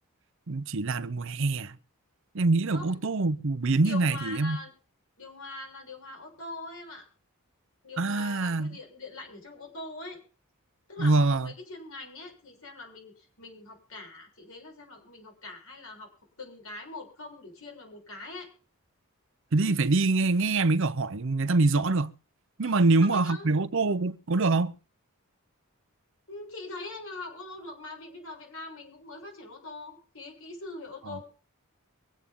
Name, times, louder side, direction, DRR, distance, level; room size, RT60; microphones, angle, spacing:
voice 1, 0.5-1.8 2.3-4.6 8.0-8.8 11.0-11.5 19.5-22.1 22.6-24.7 31.1-31.2, right 3 dB, 60° right, 0.7 m, -25 dB
voice 2, 3.8-4.7 5.2-7.1 7.8-10.2 10.9-16.1 16.4-18.5 22.6-23.5 26.3-31.3, left 2 dB, 70° left, 6.9 m, -42 dB
24.0 x 8.4 x 3.7 m
head